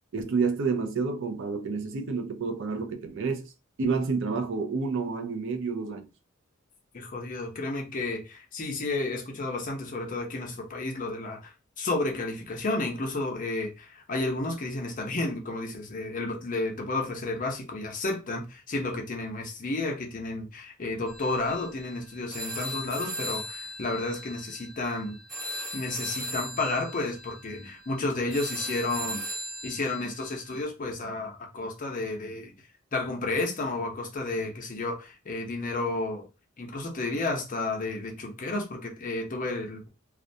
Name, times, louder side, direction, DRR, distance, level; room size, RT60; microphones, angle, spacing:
voice 1, 0.1-3.5 3.8-6.1, right 4 dB, 65° right, 0.4 m, -29 dB
voice 2, 6.9-25.2 25.7-29.2 29.6-32.5 32.9-36.3 36.6-39.9, left 2 dB, 40° left, 0.6 m, -32 dB
sound 1, 21.1-30.6, equal, ahead, 0.8 m, -38 dB
2.4 x 2.1 x 2.6 m
head